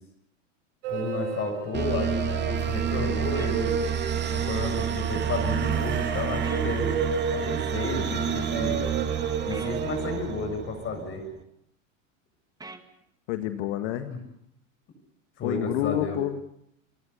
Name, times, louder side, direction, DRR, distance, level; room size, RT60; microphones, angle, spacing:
sound 1, 0.8-10.2, right 6 dB, 65° right, 5.9 m, -34 dB
voice 1, 0.9-3.8 4.3-7.0 7.3-9.2 9.5-11.2 14.0-14.2 15.4-16.2, left 3 dB, 35° left, 5 dB, 6.9 m, -32 dB
sound 2, 1.7-11.2, right 8 dB, 25° right, 2.6 m, -29 dB
sound 3, 3.3-3.5 6.4-6.7 9.5-9.7 12.6-12.9, right 3 dB, 10° right, 2.1 m, -42 dB
voice 2, 13.3-14.1 15.4-16.5, left 12 dB, 60° left, 8 dB, 1.9 m, -29 dB
29.0 x 18.5 x 8.2 m, 0.73 s
hypercardioid pair, 110°, 39 cm